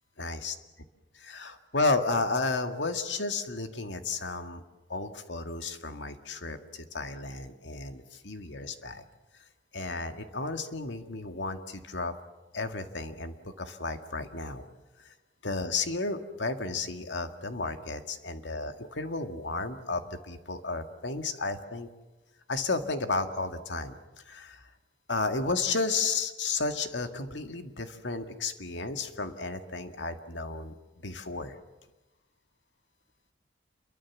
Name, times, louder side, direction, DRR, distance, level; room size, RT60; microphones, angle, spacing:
voice 1, 0.2-0.5 1.3-4.6 4.9-9.0 9.7-12.1 12.5-14.6 15.0-15.1 15.4-21.9 22.5-24.0 24.3-24.7 25.1-30.7 31.0-31.6, left 3 dB, 85° left, 7 dB, 2.0 m, -33 dB
28.0 x 23.0 x 7.3 m, 1.1 s
head